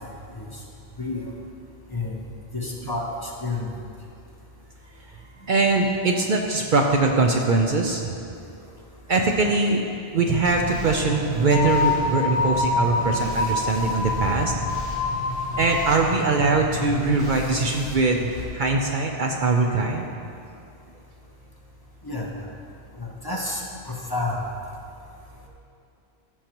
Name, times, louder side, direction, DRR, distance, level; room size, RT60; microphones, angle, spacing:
voice 1, 2.5-3.0 3.4-3.7 22.0-22.3 23.0-23.6 23.9-24.4, left 3 dB, 25° left, -3 dB, 1.0 m, -29 dB
voice 2, 5.5-8.0 9.1-9.8 10.1-14.5 15.6-20.1, right 3 dB, 55° right, 2 dB, 0.7 m, -22 dB
sound 1, 10.4-18.4, left 1 dB, 25° right, 2.0 m, -33 dB
sound 2, 11.5-16.1, left 3 dB, 75° left, 1.0 m, -26 dB
14.5 x 6.4 x 3.0 m, 2.5 s
omnidirectional pair, 1.0 m